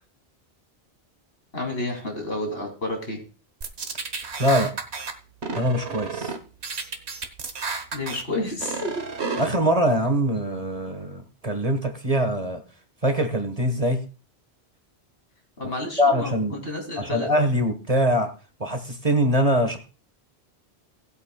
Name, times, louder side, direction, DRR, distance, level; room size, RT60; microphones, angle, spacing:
voice 1, 1.5-3.2 7.9-9.0 15.6-17.3, left 1 dB, 65° left, 1 dB, 3.3 m, -30 dB
sound 1, 3.6-5.1 5.4-6.4 6.6-8.2 8.6-9.5, right 5 dB, 85° right, 1.5 m, -31 dB
voice 2, 4.4-4.7 5.5-6.3 9.4-12.6 13.0-14.0 16.0-16.6 17.0-18.3 18.6-19.8, equal, 35° right, 6 dB, 1.5 m, -23 dB
18.5 x 8.2 x 2.3 m, 0.35 s
omnidirectional pair, 1.1 m